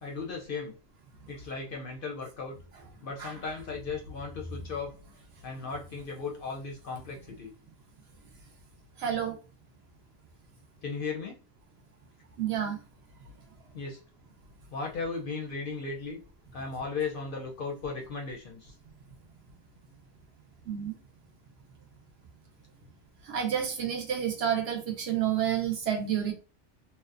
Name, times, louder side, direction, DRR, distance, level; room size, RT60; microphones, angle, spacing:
voice 1, 0.0-0.8 1.3-2.6 3.0-4.9 5.4-7.5 10.8-11.4 13.7-14.0 14.7-16.2 16.5-18.7, left 4 dB, 60° left, 1 dB, 0.6 m, -36 dB
voice 2, 9.0-9.4 12.4-12.8 20.7-20.9 23.2-26.3, right 9 dB, 65° right, 5 dB, 0.8 m, -29 dB
2.7 x 2.0 x 2.4 m, 0.34 s
omnidirectional pair, 1.2 m